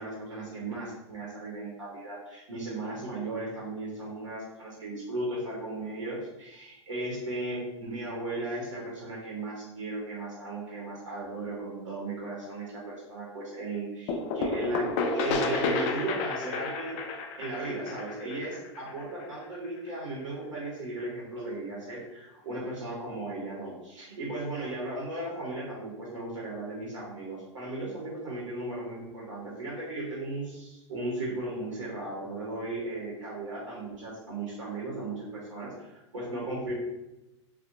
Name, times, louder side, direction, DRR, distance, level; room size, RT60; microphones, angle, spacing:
voice 1, 0.0-14.9 15.1-17.0 17.4-36.7, right 2 dB, 85° right, -5 dB, 0.8 m, -36 dB
sound 1, 14.1-19.7, left 3 dB, 45° left, 0.4 m, -31 dB
2.7 x 2.1 x 2.5 m, 0.97 s
hypercardioid pair, 100°, 16 cm